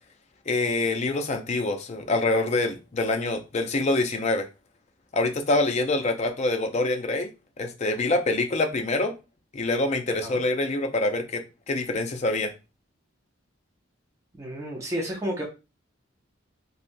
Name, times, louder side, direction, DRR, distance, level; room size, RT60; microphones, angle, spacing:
voice 1, 0.5-4.5 5.1-7.3 7.6-9.1 9.5-12.5, left 2 dB, 35° left, 0.5 m, -25 dB
voice 2, 14.4-15.4, equal, 15° right, 0.6 m, -31 dB
3.2 x 2.7 x 2.5 m
head